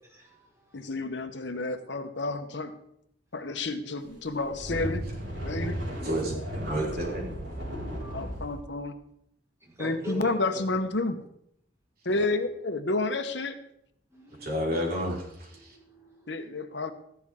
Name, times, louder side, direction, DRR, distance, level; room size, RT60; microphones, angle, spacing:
voice 1, 0.0-0.8 3.4-3.5 7.9-8.3 9.6-10.6 14.1-14.5 15.5-16.5, left 1 dB, 15° right, -4 dB, 4.6 m, -43 dB
voice 2, 0.7-2.7 3.3-5.0 5.4-5.8 8.1-9.0 9.8-11.2 12.0-13.6 16.3-16.9, left 2 dB, 70° left, 8 dB, 1.1 m, -30 dB
sound 1, 4.3-8.5, equal, 85° right, 5.5 m, -35 dB
voice 3, 6.0-7.2 12.1-12.2 14.4-15.8, equal, 55° right, -3 dB, 4.6 m, -31 dB
14.5 x 12.0 x 3.7 m, 0.74 s
head